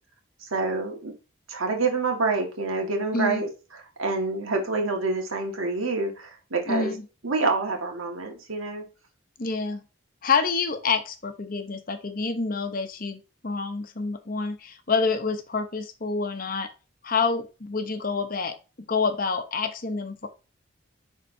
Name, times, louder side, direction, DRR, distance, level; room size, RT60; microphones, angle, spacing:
voice 1, 0.4-1.1 1.5-3.5 4.0-6.9 7.2-8.8, right 3 dB, 90° right, 1.7 m, -27 dB
voice 2, 6.7-7.0 9.4-9.8 10.2-16.7 17.0-18.6 18.9-20.3, left 4 dB, 45° left, 0.8 m, -27 dB
10.5 x 3.7 x 2.7 m
head